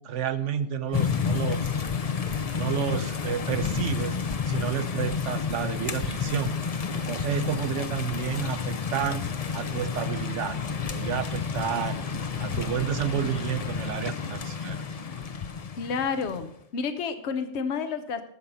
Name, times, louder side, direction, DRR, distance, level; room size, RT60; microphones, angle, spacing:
voice 1, 0.0-1.7 2.5-4.2 4.4-6.5 6.9-9.2 9.5-10.6 10.9-14.8, right 9 dB, 75° right, 11 dB, 1.1 m, -30 dB
Insect, 0.8-14.1, right 3 dB, 50° right, 1.2 m, -50 dB
sound 1, 0.9-16.5, left 6 dB, 40° left, 0.6 m, -30 dB
voice 2, 15.8-18.2, left 5 dB, 65° left, 10 dB, 1.1 m, -30 dB
12.5 x 7.1 x 5.5 m, 0.72 s
omnidirectional pair, 1.3 m